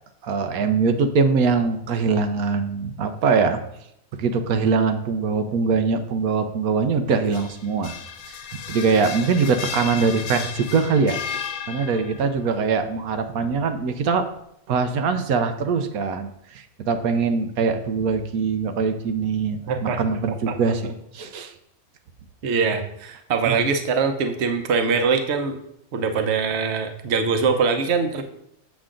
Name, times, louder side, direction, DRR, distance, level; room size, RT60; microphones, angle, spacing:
voice 1, 0.2-3.6 4.2-7.9 8.7-14.2 14.7-21.5 23.4-23.6, right 5 dB, 85° right, 7 dB, 1.2 m, -22 dB
sound 1, 7.1-12.3, left 8 dB, 80° left, 1.2 m, -34 dB
voice 2, 19.7-20.0 20.5-20.6 22.4-25.6 25.9-28.2, right 5 dB, 55° right, 6 dB, 1.0 m, -22 dB
7.4 x 7.1 x 3.7 m, 0.77 s
omnidirectional pair, 1.5 m